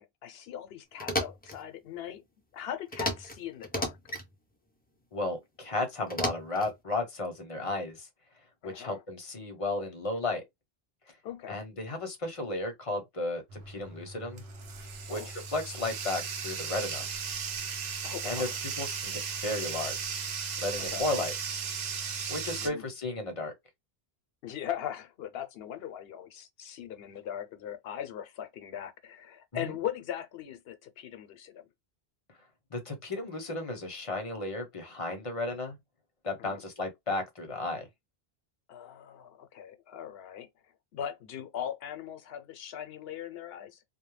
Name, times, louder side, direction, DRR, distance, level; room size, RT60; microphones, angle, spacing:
voice 1, 0.0-2.2 2.5-4.0 8.6-9.0 11.2-11.6 15.1-15.3 18.0-18.6 20.8-21.0 22.5-22.8 24.4-31.7 36.4-36.6 38.7-40.5 40.9-43.8, left 10 dB, 75° left, 0.8 m, -40 dB
sound 1, 1.0-1.6 2.9-3.4 3.6-4.3 6.1-6.7, left 1 dB, 15° left, 0.3 m, -33 dB
voice 2, 5.1-8.1 8.6-10.4 11.5-14.4 15.1-17.1 18.2-20.2 20.6-21.3 22.3-23.5 29.6-29.7 32.7-35.8 36.2-37.9, left 2 dB, 40° left, 0.7 m, -34 dB
Bathtub (filling or washing), 13.5-22.7, right 6 dB, 85° right, 0.9 m, -36 dB
2.2 x 2.0 x 3.1 m
omnidirectional pair, 1.0 m